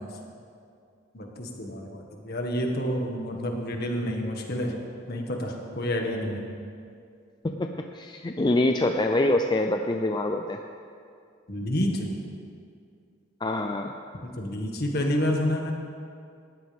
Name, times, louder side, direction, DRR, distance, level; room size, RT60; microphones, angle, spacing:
voice 1, 1.1-4.8 5.1-6.4 11.5-12.1 14.2-15.7, equal, 50° left, 1 dB, 1.8 m, -29 dB
voice 2, 7.4-10.6 13.4-13.9, left 2 dB, 20° left, 4 dB, 0.4 m, -25 dB
19.0 x 14.5 x 3.5 m, 2.4 s
head